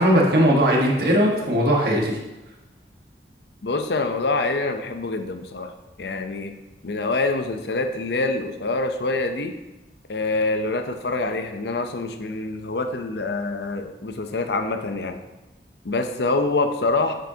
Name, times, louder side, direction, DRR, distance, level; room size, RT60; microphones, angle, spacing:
voice 1, 0.0-2.2, equal, 60° right, -1 dB, 1.3 m, -19 dB
voice 2, 3.6-5.7 6.0-6.5 6.8-9.5 10.1-15.2 15.8-17.1, left 3 dB, 70° left, 7 dB, 0.7 m, -25 dB
7.5 x 7.3 x 2.8 m, 1.0 s
head